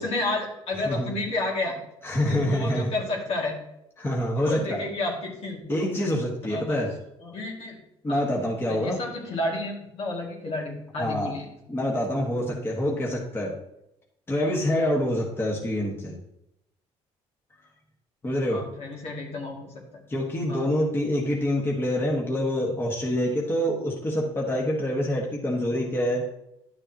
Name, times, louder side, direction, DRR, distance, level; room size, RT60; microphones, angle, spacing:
voice 1, 0.0-1.8 2.3-3.5 4.4-6.0 6.5-6.8 7.2-7.8 8.1-8.2 8.7-11.4 18.5-20.0 20.5-20.7, left 2 dB, 60° left, -1 dB, 2.5 m, -31 dB
voice 2, 2.0-2.9 4.0-4.8 5.7-6.9 8.0-9.0 11.0-11.4 11.7-13.6 14.3-16.1 18.2-18.6 20.1-26.3, left 1 dB, 20° left, -2 dB, 1.6 m, -26 dB
11.5 x 6.8 x 3.0 m, 0.83 s
cardioid pair, 110°, 12 cm